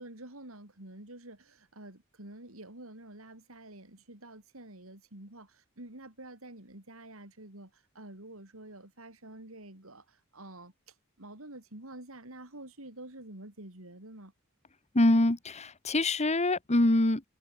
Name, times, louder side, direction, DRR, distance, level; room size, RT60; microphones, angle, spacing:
voice 1, 0.0-10.7 11.2-14.3, right 1 dB, 75° right, 5.6 m, -48 dB
voice 2, 14.9-17.2, left 1 dB, 30° left, 1.6 m, -25 dB
head